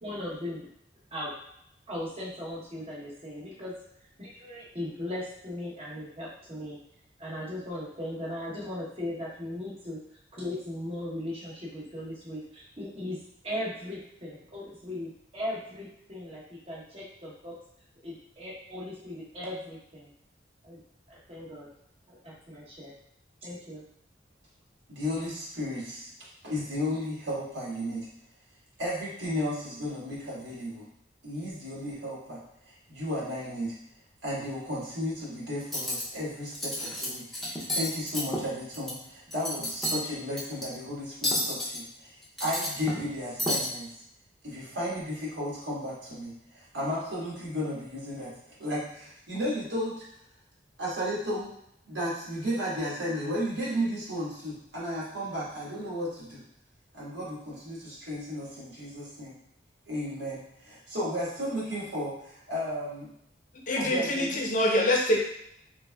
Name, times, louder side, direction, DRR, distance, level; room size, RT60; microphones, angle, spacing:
voice 1, 0.0-0.7 1.1-1.3 1.9-3.7 4.2-6.8 7.2-10.0 10.3-13.2 13.4-17.5 18.0-20.1 20.6-20.8 21.1-21.7 22.1-22.9 23.4-23.8, left 1 dB, 35° right, -5 dB, 0.9 m, -38 dB
voice 2, 24.9-26.1 26.4-28.1 28.8-30.8 31.2-32.4 32.7-33.7 34.2-42.1 42.4-43.9 44.4-48.3 48.6-49.9 50.8-51.5 51.9-56.4 56.9-59.3 59.9-63.1 63.7-64.4, equal, 85° right, -7 dB, 1.5 m, -34 dB
Cutlery silverware, 35.6-36.0 36.5-37.1 37.3-38.9 39.3-40.0 40.4-40.6 41.2-41.8 42.2-43.1 43.4-43.7, left 1 dB, ahead, 0.6 m, -31 dB
voice 3, 63.7-65.2, left 1 dB, 45° left, 0 dB, 0.6 m, -25 dB
3.3 x 3.2 x 2.3 m, 0.75 s
head